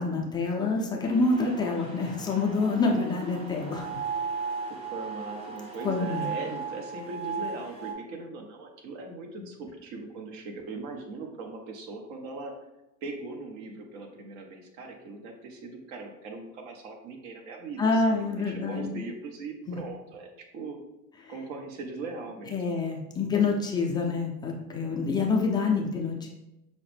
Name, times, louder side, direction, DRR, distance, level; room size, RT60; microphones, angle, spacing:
voice 1, 0.0-4.0 5.8-6.3 17.8-18.9 19.7-19.8 22.5-26.3, left 3 dB, 10° left, -1 dB, 0.3 m, -27 dB
sound 1, 1.0-7.9, right 5 dB, 15° right, 0.7 m, -36 dB
voice 2, 4.7-12.5 13.0-20.8 21.3-22.6, right 3 dB, 55° right, 3 dB, 0.9 m, -40 dB
5.6 x 2.1 x 3.2 m, 0.93 s
hypercardioid pair, 95°, 44 cm